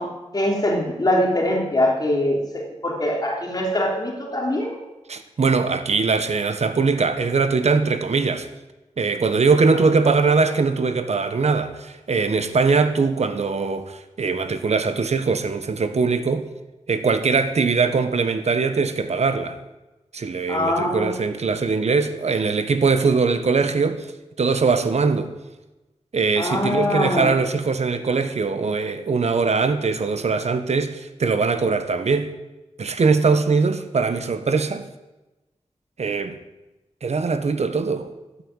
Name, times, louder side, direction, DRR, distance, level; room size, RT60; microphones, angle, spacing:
voice 1, 0.0-4.8 20.5-21.1 26.4-27.3, left 1 dB, 35° left, 3.4 m, -23 dB
voice 2, 5.1-8.5 9.0-16.5 16.9-19.6 20.1-24.1 24.4-25.3 26.1-32.3 32.8-34.8 36.0-36.4 37.0-38.1, right 4 dB, 70° right, 1.4 m, -21 dB
14.5 x 8.9 x 9.1 m
wide cardioid pair, 100°, 12 cm